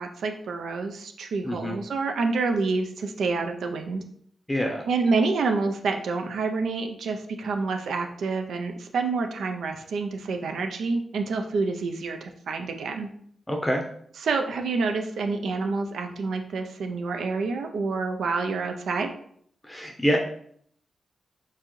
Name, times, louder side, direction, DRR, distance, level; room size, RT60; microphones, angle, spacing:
voice 1, 0.0-4.0 4.9-13.1 14.2-19.1, right 4 dB, 85° right, 5 dB, 0.4 m, -28 dB
voice 2, 1.4-1.8 4.5-4.8 13.5-13.8 19.6-20.2, equal, 10° left, 1 dB, 0.6 m, -26 dB
4.6 x 3.8 x 3.1 m, 0.64 s
cardioid pair, 80°, 0 cm